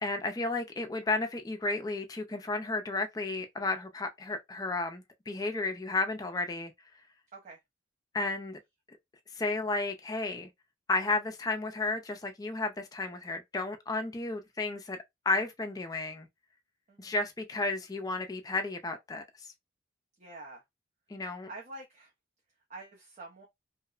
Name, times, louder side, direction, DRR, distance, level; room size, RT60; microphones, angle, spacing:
voice 1, 0.0-6.7 8.1-8.6 9.3-10.5 10.9-15.0 15.3-16.3 17.0-19.5 21.1-21.5, left 3 dB, 20° left, 0.3 m, -33 dB
voice 2, 20.2-20.6 21.5-22.1 22.7-23.4, right 2 dB, 35° right, 0.5 m, -46 dB
2.8 x 2.0 x 2.4 m
head